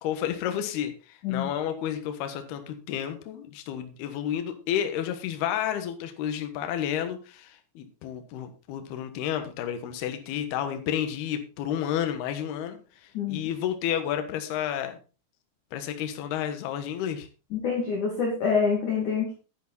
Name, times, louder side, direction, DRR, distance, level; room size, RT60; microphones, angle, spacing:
voice 1, 0.0-15.0 15.7-17.3, left 10 dB, 65° left, 7 dB, 2.8 m, -31 dB
voice 2, 13.1-13.5 17.5-19.3, left 5 dB, 45° left, -1 dB, 3.1 m, -26 dB
10.5 x 10.0 x 4.1 m, 0.33 s
omnidirectional pair, 5.8 m